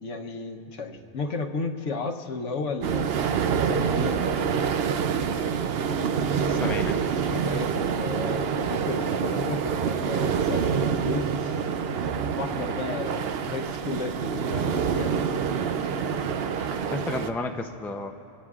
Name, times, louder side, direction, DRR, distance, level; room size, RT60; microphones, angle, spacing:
voice 1, 0.0-3.1 3.6-4.2 7.2-11.5 12.4-15.1, left 3 dB, 85° left, 3 dB, 1.3 m, -33 dB
sound 1, 2.8-17.3, right 6 dB, 60° right, 0.8 m, -26 dB
voice 2, 6.3-7.0 16.9-18.1, left 2 dB, 5° left, 5 dB, 0.3 m, -32 dB
25.5 x 17.5 x 2.4 m, 2.7 s
omnidirectional pair, 1.2 m